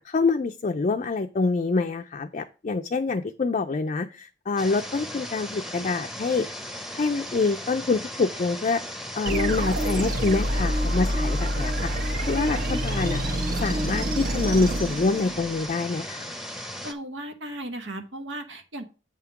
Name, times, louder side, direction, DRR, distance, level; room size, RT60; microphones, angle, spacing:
voice 1, 0.0-6.5 6.9-8.8 9.2-13.2 13.6-16.3, left 3 dB, 40° left, 5 dB, 0.4 m, -26 dB
sound 1, 4.6-16.9, equal, ahead, 0.8 m, -37 dB
sound 2, 9.3-15.7, equal, 50° right, 1.1 m, -27 dB
voice 2, 16.8-18.8, right 1 dB, 85° right, 6 dB, 1.0 m, -36 dB
8.1 x 3.6 x 5.9 m, 0.33 s
head